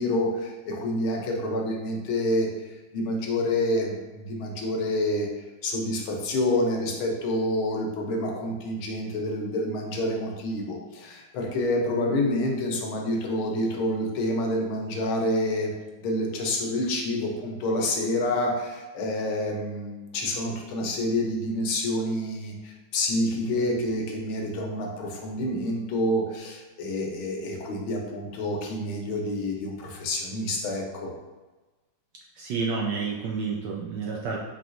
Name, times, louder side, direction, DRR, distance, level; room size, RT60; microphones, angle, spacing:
voice 1, 0.0-2.5 2.9-5.3 5.6-15.7 16.0-31.1, left 1 dB, 80° left, 1 dB, 1.6 m, -28 dB
voice 2, 32.4-34.4, right 5 dB, 75° right, -2 dB, 1.0 m, -29 dB
4.7 x 3.6 x 2.5 m, 1.2 s
omnidirectional pair, 2.3 m